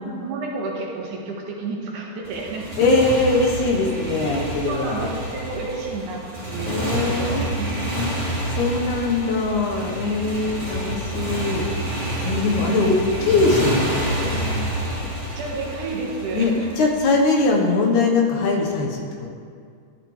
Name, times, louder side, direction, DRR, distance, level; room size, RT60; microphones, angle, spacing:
voice 1, 0.0-2.8 4.7-7.9 12.3-12.8 14.8-16.8, right 3 dB, 75° right, -2 dB, 3.0 m, -31 dB
Motorcycle, 2.2-17.4, right 1 dB, 15° right, 3.4 m, -28 dB
voice 2, 2.8-5.1 6.7-7.4 8.0-8.1 8.5-11.7 12.2-14.6 16.3-16.5 16.8-19.0, left 3 dB, 75° left, 0 dB, 2.6 m, -21 dB
13.5 x 12.5 x 3.2 m, 2.2 s
omnidirectional pair, 3.6 m